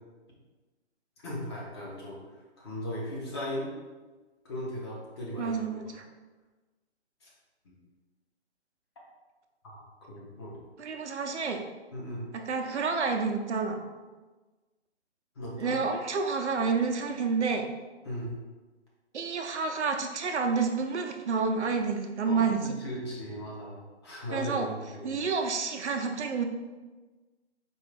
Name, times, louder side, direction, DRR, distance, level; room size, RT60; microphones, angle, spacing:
voice 1, 1.2-3.7 4.4-5.8 7.2-7.3 7.6-7.7 9.6-9.8 10.1-10.5 11.9-12.2 15.4-15.8 18.0-18.4 22.3-25.2, equal, 25° left, -5 dB, 0.8 m, -37 dB
voice 2, 5.4-6.0 10.8-11.6 12.3-13.8 15.6-17.7 19.1-22.7 24.3-24.7 25.0-26.5, right 5 dB, 75° right, 4 dB, 0.6 m, -29 dB
4.4 x 3.1 x 3.4 m, 1.3 s
hypercardioid pair, 155°, 34 cm